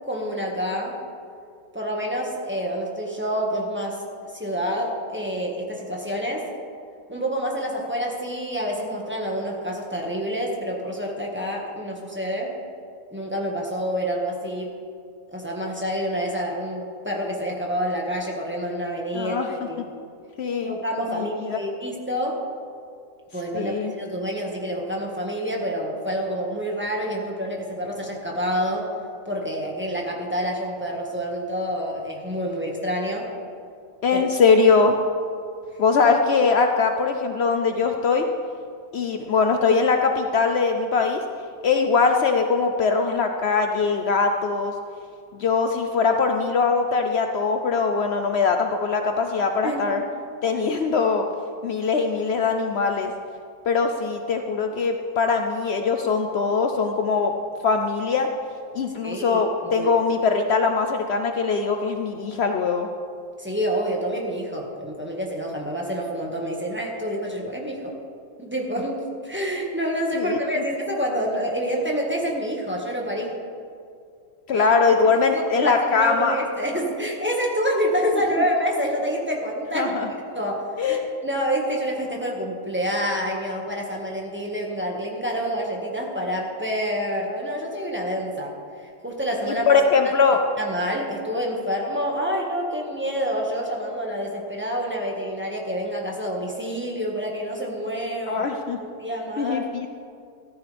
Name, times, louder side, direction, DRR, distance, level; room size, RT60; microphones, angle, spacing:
voice 1, 0.1-1.0 1.7-4.1 4.3-6.5 7.1-12.5 13.1-14.7 15.3-19.8 20.7-22.4 23.3-28.9 29.2-33.3 34.1-34.2 36.4-36.5 49.6-49.9 59.0-59.9 63.4-67.9 68.4-73.4 74.5-74.7 75.3-79.9 80.3-88.5 89.0-89.7 90.6-98.4 99.0-99.6, equal, 5° right, -2 dB, 1.5 m, -27 dB
voice 2, 19.1-19.5 20.4-20.7 21.1-21.6 23.5-23.9 34.0-35.0 35.8-38.3 38.9-41.2 41.6-44.7 45.3-50.0 50.4-51.3 51.6-53.1 53.7-57.3 57.6-58.3 58.7-62.9 70.1-70.6 74.5-76.4 79.7-80.1 80.8-81.1 89.5-90.4 98.3-98.8 99.4-99.9, left 4 dB, 85° left, 5 dB, 0.5 m, -21 dB
14.5 x 14.0 x 3.4 m, 2.3 s
omnidirectional pair, 1.9 m